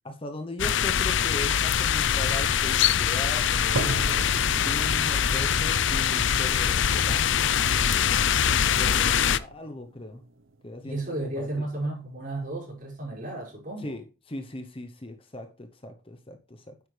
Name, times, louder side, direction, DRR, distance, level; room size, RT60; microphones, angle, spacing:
voice 1, 0.0-4.3 4.6-7.6 8.5-10.2 10.6-11.0 11.4-11.7 13.8-16.7, left 1 dB, 25° left, 0.8 m, -39 dB
sound 1, 0.6-9.4, left 8 dB, 65° left, 0.5 m, -23 dB
sound 2, 3.8-11.8, right 3 dB, 75° right, 0.8 m, -39 dB
voice 2, 10.8-14.0, right 2 dB, 40° right, 5.3 m, -33 dB
9.7 x 8.0 x 3.3 m
head